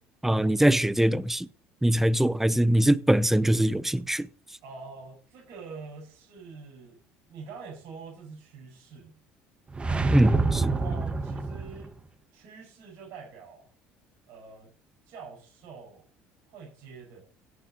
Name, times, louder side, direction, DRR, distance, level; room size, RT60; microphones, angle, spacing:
voice 1, 0.2-1.5 1.8-4.3 10.1-10.7, right 1 dB, 5° right, 0.6 m, -22 dB
voice 2, 4.6-7.0 7.3-9.2 10.6-11.9 12.3-13.7 14.3-14.7 15.1-16.1 16.5-17.2, right 4 dB, 65° right, 5.7 m, -45 dB
sound 1, 9.7-11.9, right 3 dB, 20° right, 1.2 m, -27 dB
16.5 x 7.4 x 3.9 m
supercardioid pair, 85°, 5 cm